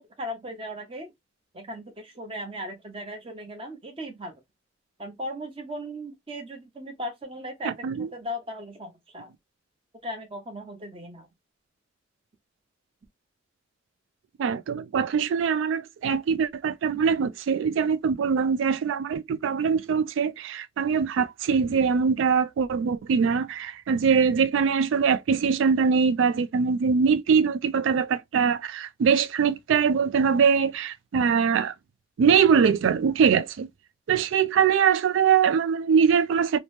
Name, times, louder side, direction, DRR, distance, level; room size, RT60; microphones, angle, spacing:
voice 1, 0.2-1.1 1.5-4.3 5.0-7.7 8.1-9.3 10.0-11.3, equal, 30° right, 0.7 m, -37 dB
voice 2, 7.6-8.1 14.4-31.7 32.2-33.7 34.1-36.6, right 6 dB, 75° right, 0.3 m, -22 dB
2.8 x 2.0 x 3.2 m
head